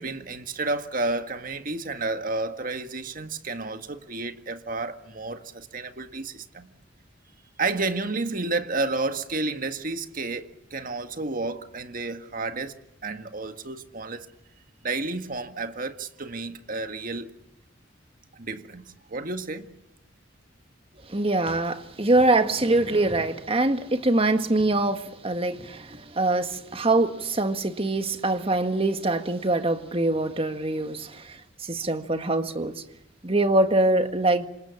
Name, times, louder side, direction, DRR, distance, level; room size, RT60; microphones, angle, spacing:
voice 1, 0.0-6.7 7.6-12.8 13.0-14.3 14.8-17.3 18.3-19.7, right 3 dB, 45° right, 1.8 m, -31 dB
voice 2, 21.0-32.8 33.2-34.5, right 2 dB, 30° right, 1.7 m, -24 dB
28.0 x 26.5 x 7.3 m
head